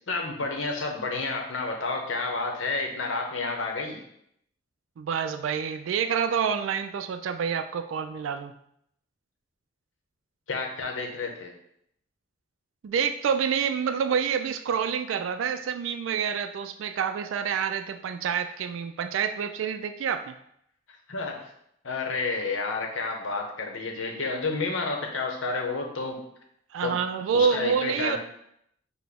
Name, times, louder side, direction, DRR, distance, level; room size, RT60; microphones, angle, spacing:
voice 1, 0.1-4.0 10.5-11.5 21.1-21.5 21.8-26.2 26.8-26.9 27.3-28.2, left 3 dB, 85° left, 2 dB, 0.8 m, -30 dB
voice 2, 5.0-8.5 12.8-20.4 26.7-28.2, right 7 dB, 85° right, 8 dB, 0.3 m, -27 dB
5.8 x 2.1 x 3.5 m, 0.73 s
head